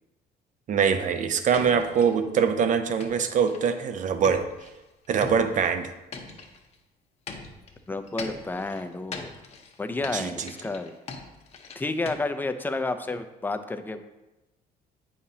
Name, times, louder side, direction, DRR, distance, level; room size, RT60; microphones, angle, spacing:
voice 1, 0.7-4.5 5.1-5.9 10.1-10.5, right 6 dB, 50° right, 9 dB, 0.6 m, -23 dB
sound 1, 1.5-2.2 3.0-3.8 4.2-6.8 7.3-12.1, left 4 dB, 40° left, 0.9 m, -41 dB
voice 2, 7.9-9.3 9.8-10.9 11.8-14.0, left 2 dB, 10° left, 8 dB, 0.5 m, -30 dB
8.5 x 5.6 x 2.8 m, 1.0 s
cardioid pair, 110°, 17 cm